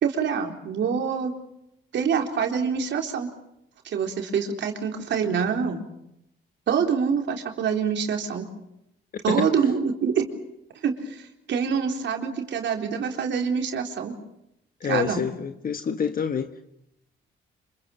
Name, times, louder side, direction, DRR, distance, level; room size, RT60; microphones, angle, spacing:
voice 1, 0.0-1.3 1.9-3.3 3.8-5.8 6.7-8.5 9.2-10.3 10.8-14.2 14.9-15.2, right 6 dB, 65° right, 3.9 m, -25 dB
voice 2, 14.8-16.6, left 7 dB, 45° left, 1.4 m, -27 dB
26.5 x 25.5 x 7.1 m
cardioid pair, 90°, 20 cm